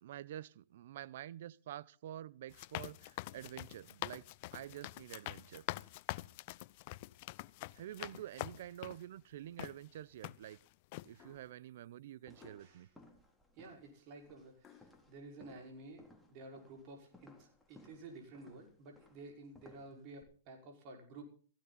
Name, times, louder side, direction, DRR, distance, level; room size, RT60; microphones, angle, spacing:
voice 1, 0.0-4.3 4.5-5.6 7.7-10.6 11.1-12.9 19.9-20.1, right 12 dB, 65° right, 0.8 m, -48 dB
sound 1, 2.5-9.0 9.6-9.7 10.2-10.6 10.9-11.1, left 20 dB, 50° left, 0.6 m, -45 dB
sound 2, 11.2-11.6 12.3-12.9 14.6-15.0, left 7 dB, 25° left, 1.5 m, -62 dB
sound 3, 12.2-20.2, left 1 dB, 5° left, 3.4 m, -63 dB
voice 2, 13.6-21.2, right 2 dB, 45° right, 5.4 m, -53 dB
16.0 x 16.0 x 4.1 m
hypercardioid pair, 130°, 0 cm